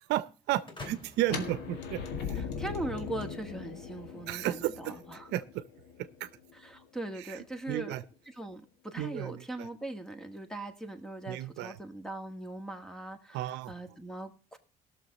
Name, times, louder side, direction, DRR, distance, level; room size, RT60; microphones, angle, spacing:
voice 1, 0.0-2.4 4.3-4.9 5.3-5.6 6.0-6.3 7.2-7.4 7.7-8.0 9.0-9.7 11.3-11.7 13.3-13.7, right 14 dB, 90° right, 14 dB, 0.7 m, -33 dB
sound 1, 0.7-2.6, left 3 dB, 30° left, 2.6 m, -48 dB
sound 2, 1.2-7.1, left 6 dB, 85° left, 1.9 m, -40 dB
voice 2, 2.4-5.3 6.5-7.9 8.3-14.6, right 1 dB, 5° left, 8 dB, 1.7 m, -40 dB
17.5 x 6.7 x 4.0 m, 0.35 s
cardioid pair, 110°, 17 cm